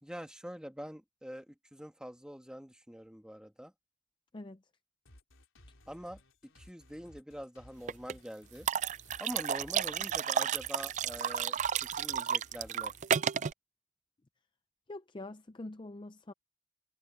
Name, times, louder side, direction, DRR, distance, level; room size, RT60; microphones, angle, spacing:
voice 1, 0.0-3.7 5.9-6.2 6.6-8.7 9.2-12.9, equal, 5° right, 1.8 m, -45 dB
sound 1, 5.1-13.1, left 1 dB, 85° left, 3.9 m, -59 dB
sound 2, 7.9-8.1 8.7-13.5, right 8 dB, 35° right, 0.3 m, -32 dB
voice 2, 14.9-16.3, left 2 dB, 25° left, 0.4 m, -44 dB
head